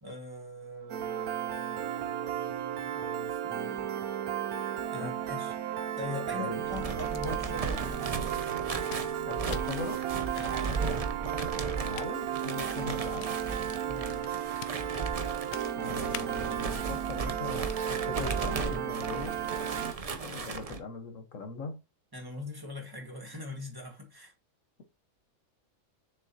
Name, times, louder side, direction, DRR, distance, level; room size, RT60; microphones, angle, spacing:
voice 1, 0.0-3.9 4.9-5.5 6.0-8.4 10.3-11.0 13.9-14.3 22.1-24.3, left 2 dB, 15° right, 1.7 m, -42 dB
Piano, 0.9-19.9, right 10 dB, 85° right, 1.1 m, -34 dB
sound 1, 6.6-20.8, right 4 dB, 35° right, 0.6 m, -36 dB
sound 2, 7.0-16.6, left 11 dB, 85° left, 1.1 m, -50 dB
voice 2, 9.3-10.0 11.8-13.4 15.7-19.4 20.2-21.8, left 3 dB, 65° left, 1.5 m, -40 dB
7.0 x 6.6 x 2.8 m
omnidirectional pair, 1.5 m